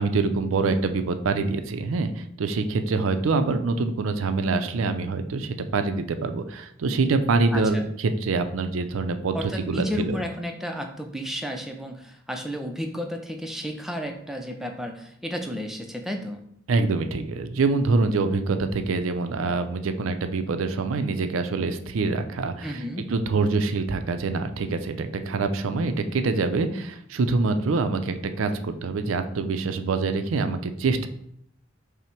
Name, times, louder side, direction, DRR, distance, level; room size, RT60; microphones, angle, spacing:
voice 1, 0.0-10.2 16.7-22.8 23.1-31.1, right 3 dB, 90° right, 9 dB, 0.4 m, -25 dB
voice 2, 7.5-7.9 9.3-16.4 22.6-23.1, equal, ahead, 4 dB, 0.4 m, -32 dB
5.7 x 2.1 x 4.4 m, 0.70 s
head